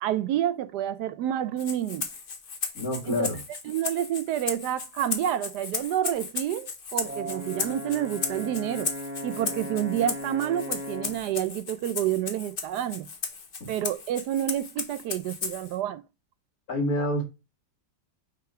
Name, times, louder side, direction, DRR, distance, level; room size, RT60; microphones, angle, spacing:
voice 1, 0.0-2.1 3.1-3.3 3.7-8.9 9.2-13.1 13.7-16.0, right 11 dB, 75° right, 1.1 m, -29 dB
Rattle (instrument), 1.6-15.8, left 5 dB, 40° left, 0.9 m, -36 dB
voice 2, 2.7-3.4 13.6-13.7 16.7-17.2, left 1 dB, 55° left, 2.5 m, -27 dB
Brass instrument, 7.0-11.3, equal, 10° right, 1.1 m, -37 dB
6.0 x 3.4 x 4.8 m
omnidirectional pair, 1.8 m